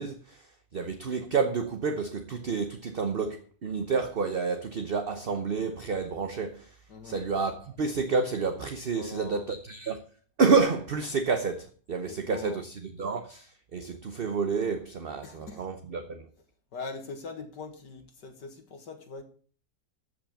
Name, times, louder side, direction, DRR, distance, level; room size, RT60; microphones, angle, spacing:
voice 1, 0.0-6.8 7.0-10.0 10.4-16.3, right 4 dB, 45° right, 0.8 m, -29 dB
voice 2, 6.9-7.2 8.9-9.5 12.0-12.6 15.2-15.6 16.7-19.2, left 4 dB, 75° left, 2.3 m, -41 dB
13.5 x 5.8 x 7.0 m
omnidirectional pair, 1.9 m